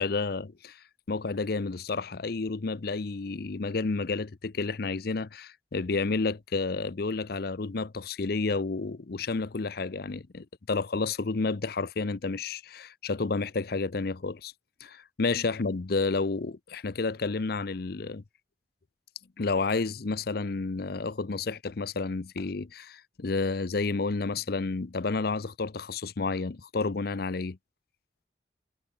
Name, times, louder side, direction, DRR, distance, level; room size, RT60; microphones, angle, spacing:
voice 1, 0.0-14.5 14.8-18.2 19.4-27.6, left 3 dB, 60° left, 0.7 m, -30 dB
head